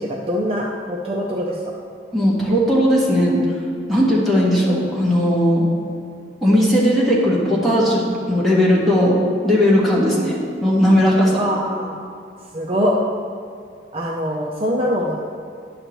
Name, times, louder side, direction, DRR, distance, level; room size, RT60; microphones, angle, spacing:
voice 1, 0.0-1.6 11.4-12.0 12.5-13.0 13.9-15.2, equal, 35° right, -1 dB, 0.5 m, -23 dB
voice 2, 2.1-3.4 3.9-5.7 6.4-8.0 8.3-9.2 9.4-11.5, equal, ahead, -6 dB, 1.4 m, -17 dB
9.9 x 6.6 x 3.0 m, 2.4 s
head